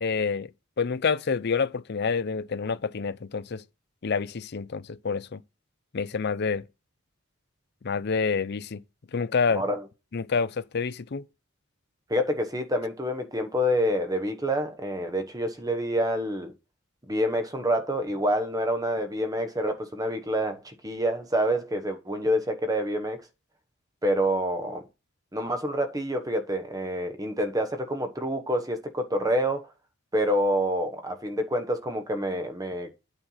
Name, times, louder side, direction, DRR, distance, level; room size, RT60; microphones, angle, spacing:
voice 1, 0.0-0.5 0.8-3.6 4.0-5.4 5.9-6.6 7.8-8.8 9.1-9.6 10.1-11.2, left 5 dB, 50° left, 0.5 m, -28 dB
voice 2, 9.5-9.8 12.1-16.5 17.1-23.2 24.0-24.8 25.3-29.7 30.1-32.9, equal, 15° right, 1.1 m, -27 dB
8.9 x 4.5 x 5.7 m
head